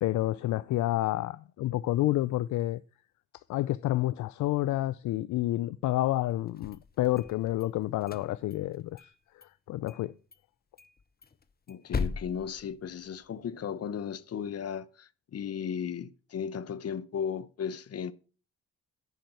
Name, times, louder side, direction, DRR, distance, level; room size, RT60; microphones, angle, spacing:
voice 1, 0.0-2.8 3.5-9.1 9.4-10.1, left 15 dB, 70° left, 0.4 m, -29 dB
sound 1, 6.5-7.7 8.0-9.1 9.4-9.5 9.9-10.0 10.3-10.4 10.8-13.4, left 5 dB, 30° left, 0.9 m, -38 dB
voice 2, 11.7-18.1, left 7 dB, 55° left, 0.8 m, -35 dB
9.2 x 5.2 x 6.4 m
supercardioid pair, 55°, 31 cm